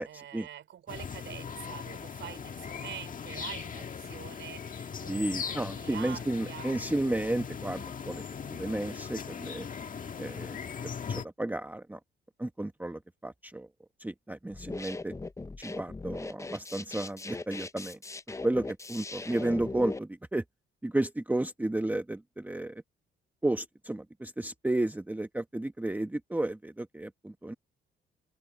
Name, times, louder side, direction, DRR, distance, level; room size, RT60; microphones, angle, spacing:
voice 1, 0.0-6.7, right 10 dB, 70° right, 4.0 m, -46 dB
sound 1, 0.9-11.3, left 6 dB, 40° left, 1.7 m, -39 dB
voice 2, 5.1-8.2 8.5-9.7 10.2-12.0 12.4-13.7 14.0-15.1 15.6-18.0 18.4-20.4 20.8-22.8 23.4-27.5, right 1 dB, 10° right, 1.0 m, -32 dB
sound 2, 14.5-20.0, left 3 dB, 15° left, 0.6 m, -39 dB
cardioid pair, 90°, 20 cm